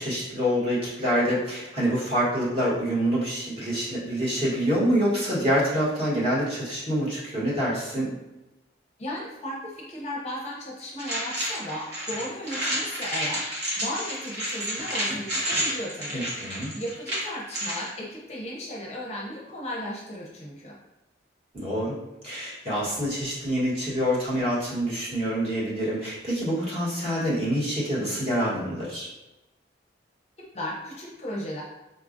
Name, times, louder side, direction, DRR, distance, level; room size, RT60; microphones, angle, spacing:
voice 1, 0.0-8.2 16.1-16.7 21.5-22.0 22.2-29.1, equal, 30° right, -8 dB, 1.2 m, -26 dB
voice 2, 9.0-13.4 13.8-16.3 16.7-20.8 30.5-31.6, equal, 35° left, -3 dB, 0.6 m, -35 dB
sound 1, 11.0-17.9, equal, 60° right, 1.1 m, -30 dB
4.0 x 2.4 x 2.5 m, 1.0 s
head